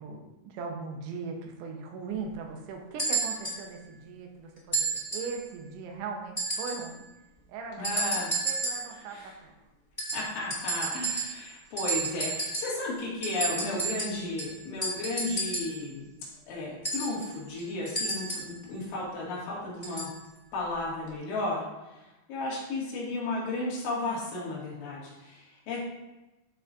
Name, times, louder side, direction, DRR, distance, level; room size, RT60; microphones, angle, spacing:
voice 1, 0.0-7.1 7.5-9.5, right 4 dB, 80° right, 2 dB, 3.3 m, -39 dB
sound 1, 3.0-3.6 4.7-5.4 6.4-6.9 7.8-8.9 10.0-11.5 11.8-12.8 13.2-15.8 16.8-18.6 19.8-20.2 21.1-21.2, right 3 dB, 10° left, 1.5 m, -32 dB
voice 2, 7.8-8.3 9.1-9.3 10.1-16.1 16.5-20.1 20.5-21.6 22.3-25.8, left 2 dB, 90° left, -5 dB, 4.6 m, -34 dB
13.5 x 5.3 x 2.6 m, 1.0 s
omnidirectional pair, 5.3 m